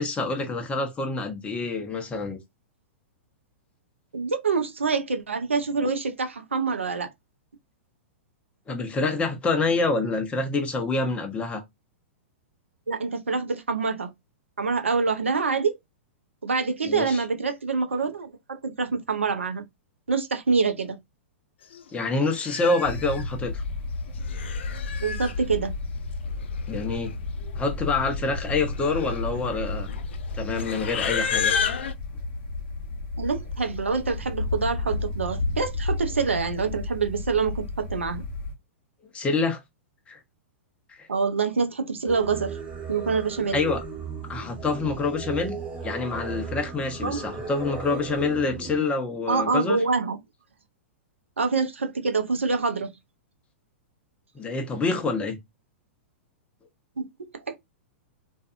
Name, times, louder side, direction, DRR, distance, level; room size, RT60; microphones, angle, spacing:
voice 1, 0.0-2.4 8.7-11.6 16.8-17.2 21.9-23.6 26.7-27.1 27.5-29.9 30.3-31.5 39.1-39.6 40.1-40.2 40.9-41.1 43.5-43.8 44.3-45.6 45.8-49.8 54.3-55.4, left 3 dB, 15° left, 0.8 m, -27 dB
voice 2, 4.1-7.1 12.9-14.1 14.6-15.8 16.4-19.6 20.1-21.0 25.0-25.7 33.2-38.2 41.1-42.6 42.9-43.6 47.0-47.2 49.3-50.2 51.4-52.9 57.0-57.6, right 4 dB, 85° right, 0.6 m, -26 dB
Livestock farm animals working animals, 21.7-21.9 22.3-23.2 24.1-25.4 26.4-26.5 26.7-27.1 27.4-27.7 28.3-31.9, left 7 dB, 65° left, 0.4 m, -31 dB
sound 1, 22.8-38.5, left 3 dB, 50° left, 0.8 m, -32 dB
Singing, 42.1-48.8, right 5 dB, 20° right, 1.1 m, -36 dB
2.5 x 2.4 x 2.4 m
figure-of-eight pair, 105°, 7 cm